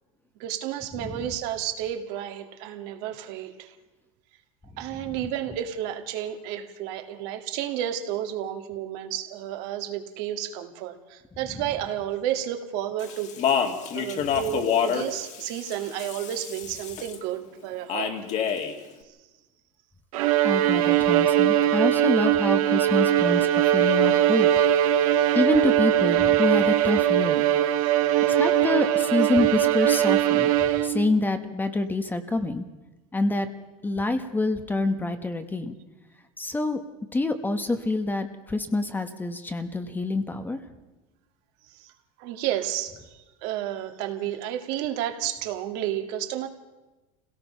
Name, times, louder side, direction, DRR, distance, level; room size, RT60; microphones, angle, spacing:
voice 1, 0.4-3.8 4.8-13.3 13.9-18.2 25.1-25.4 27.8-28.4 41.7-41.9 42.2-46.5, right 11 dB, 60° right, 6 dB, 1.9 m, -32 dB
Speech, 13.0-17.2 17.9-18.8, left 8 dB, 40° left, 2.3 m, -28 dB
Bowed string instrument, 20.1-31.2, right 12 dB, 80° right, 1.7 m, -21 dB
voice 2, 20.4-24.5 24.9-25.0 25.3-27.4 28.3-32.6 33.1-33.5 33.8-35.7 36.4-36.8 37.1-40.6, left 2 dB, 10° left, 8 dB, 1.1 m, -27 dB
26.5 x 17.5 x 5.6 m, 1.1 s
supercardioid pair, 135°, 18 cm